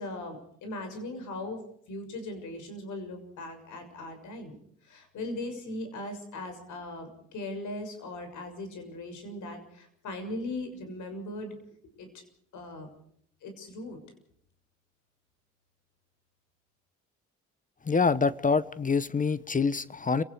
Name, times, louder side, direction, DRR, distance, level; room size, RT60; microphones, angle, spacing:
voice 1, 0.0-1.6 1.9-4.6 4.8-11.5 12.0-12.2 12.5-12.9 13.4-14.0, left 2 dB, 75° left, 6 dB, 6.8 m, -39 dB
voice 2, 17.9-20.2, left 4 dB, 25° left, 17 dB, 0.9 m, -26 dB
30.0 x 18.0 x 4.9 m, 0.66 s
cardioid pair, 90°, 30 cm